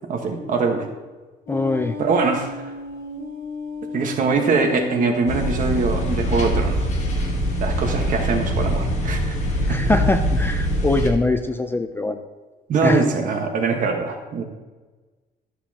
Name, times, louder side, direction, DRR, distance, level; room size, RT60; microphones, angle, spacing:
voice 1, 0.1-0.9 2.0-2.6 3.9-6.9 7.6-9.4 9.7-9.8 12.7-14.4, right 4 dB, 50° right, 3 dB, 1.3 m, -22 dB
sound 1, 1.5-6.7, left 3 dB, 65° left, 2.9 m, -33 dB
voice 2, 1.5-2.0 9.7-12.2 12.8-13.0, left 2 dB, 15° left, 7 dB, 0.4 m, -22 dB
sound 2, 5.3-11.1, equal, 45° left, 1.4 m, -23 dB
12.5 x 7.1 x 2.9 m, 1.3 s
cardioid pair, 160°, 17 cm